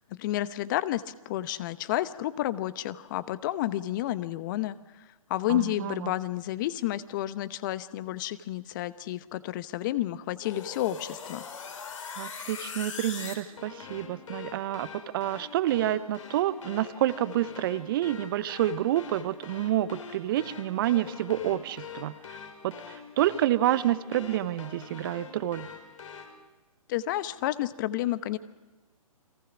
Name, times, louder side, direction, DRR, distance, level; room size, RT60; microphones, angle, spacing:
voice 1, 0.2-4.8 5.3-11.4 26.9-28.4, left 14 dB, 35° left, 15 dB, 0.9 m, -30 dB
voice 2, 5.5-6.1 12.1-14.9 15.1-22.4 22.6-25.7, right 13 dB, 40° right, 16 dB, 0.8 m, -28 dB
sound 1, 10.4-26.3, left 6 dB, 60° left, 4.8 m, -43 dB
29.5 x 23.0 x 6.1 m, 1.1 s
figure-of-eight pair, 125°, 18 cm